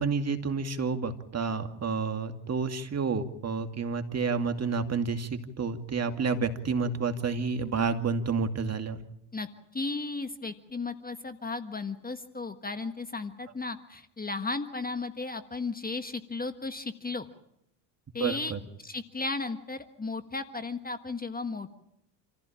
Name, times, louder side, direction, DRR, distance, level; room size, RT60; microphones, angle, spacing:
voice 1, 0.0-9.0 18.2-18.6, right 5 dB, 30° right, 7 dB, 2.5 m, -30 dB
voice 2, 9.7-17.3 18.1-18.5 18.8-21.8, left 3 dB, 15° left, 9 dB, 1.5 m, -35 dB
28.0 x 15.0 x 8.8 m, 0.79 s
hypercardioid pair, 80°, 50 cm